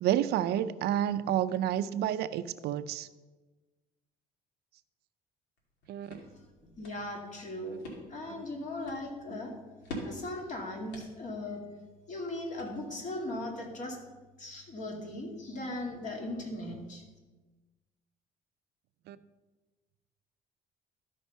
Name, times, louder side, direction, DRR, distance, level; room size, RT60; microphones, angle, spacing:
voice 1, 0.0-3.1 5.9-6.2 9.3-9.4 19.1-19.2, right 11 dB, 75° right, 13 dB, 0.5 m, -30 dB
sound 1, 5.6-13.2, left 1 dB, 85° left, 2.6 m, -47 dB
voice 2, 6.6-7.8 8.1-9.5 10.0-11.6 12.1-14.0 14.4-17.0, left 1 dB, 45° left, 1 dB, 2.4 m, -38 dB
13.5 x 5.4 x 5.5 m, 1.2 s
cardioid pair, 110°, 17 cm